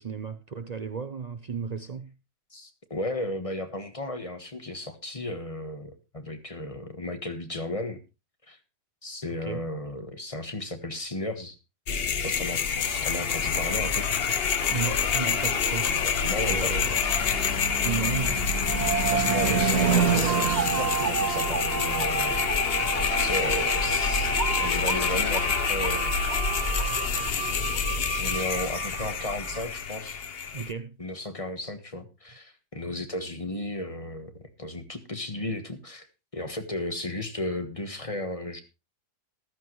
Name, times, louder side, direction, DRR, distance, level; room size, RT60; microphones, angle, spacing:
voice 1, 0.0-2.1 9.4-9.7 14.7-15.9 16.5-17.0 17.8-18.5 19.4-19.8 30.5-31.0, right 6 dB, 85° right, 0.3 m, -34 dB
voice 2, 2.5-8.0 8.5-8.6 9.0-11.6 12.2-14.1 15.9-16.7 19.1-22.4 23.2-24.3 24.6-26.2 28.2-30.2 31.0-36.1 36.3-38.6, left 1 dB, 20° left, 1.4 m, -34 dB
sound 1, 11.9-30.7, left 6 dB, 45° left, 0.9 m, -27 dB
Car passing by / Truck / Engine, 15.8-26.0, right 6 dB, 65° right, 1.9 m, -31 dB
sound 2, 18.6-29.6, right 6 dB, 40° right, 0.6 m, -32 dB
14.0 x 13.0 x 3.1 m
omnidirectional pair, 1.8 m